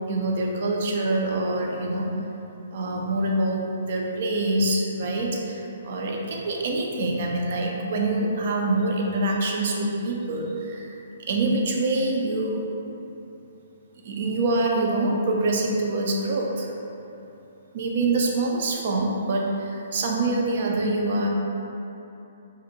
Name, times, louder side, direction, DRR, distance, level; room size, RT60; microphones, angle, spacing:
voice 1, 0.1-2.1 2.7-11.0 11.3-12.6 14.0-16.7 17.7-21.3, right 2 dB, 55° right, 0 dB, 0.4 m, -25 dB
2.6 x 2.0 x 2.6 m, 2.8 s
hypercardioid pair, 135°, 0 cm